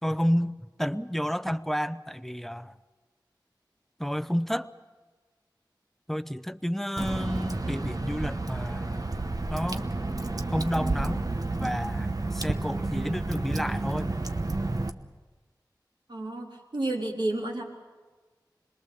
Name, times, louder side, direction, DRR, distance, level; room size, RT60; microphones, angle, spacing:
voice 1, 0.0-2.7 4.0-4.7 6.1-9.1 9.5-9.9 10.5-11.3 11.6-14.1, equal, 5° left, 13 dB, 0.7 m, -30 dB
Water / Drip, 7.0-14.9, right 2 dB, 50° right, 1.0 m, -31 dB
voice 2, 16.1-17.6, right 2 dB, 80° right, -2 dB, 3.8 m, -31 dB
26.0 x 21.0 x 7.0 m, 1.3 s
wide cardioid pair, 45°, 8 cm